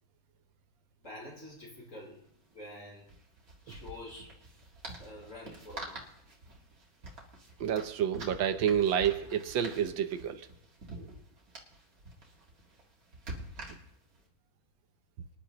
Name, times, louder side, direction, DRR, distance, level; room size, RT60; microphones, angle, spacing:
voice 1, 1.0-2.3 2.5-3.1 3.7-4.3 5.0-6.0, left 1 dB, 40° left, 4.2 m, -47 dB
sound 1, 1.0-1.1 1.4-1.5 3.0-14.2, right 2 dB, 50° right, 2.4 m, -47 dB
voice 2, 7.6-10.4 11.0-11.1, right 9 dB, 85° right, 1.6 m, -29 dB
25.0 x 10.5 x 3.0 m
omnidirectional pair, 2.0 m